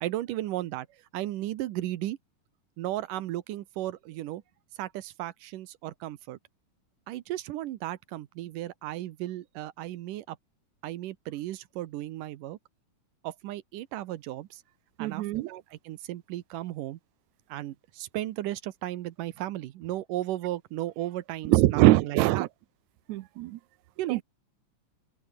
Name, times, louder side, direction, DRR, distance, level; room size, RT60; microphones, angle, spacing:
voice 1, 0.0-0.9 1.1-2.2 2.8-4.4 4.8-6.4 7.1-10.4 10.8-12.6 13.2-14.6 15.0-17.0 17.5-22.5 24.0-24.2, right 14 dB, 90° right, 2.6 m, -35 dB
voice 2, 15.0-15.5 21.5-22.5 23.1-23.6 24.1-24.2, right 17 dB, 75° right, 1.9 m, -22 dB
omnidirectional pair, 3.7 m